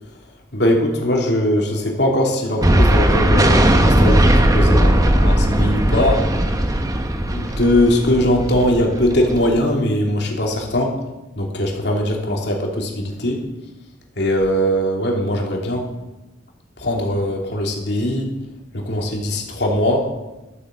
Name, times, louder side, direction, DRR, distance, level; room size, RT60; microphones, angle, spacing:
voice 1, 0.5-6.3 7.2-11.0 11.4-13.4 14.2-15.9 16.8-18.4 18.7-20.1, left 1 dB, 65° left, 0 dB, 3.0 m, -20 dB
sound 1, 2.6-9.6, right 1 dB, 20° right, 1.1 m, -17 dB
13.5 x 8.8 x 7.7 m, 1.0 s
head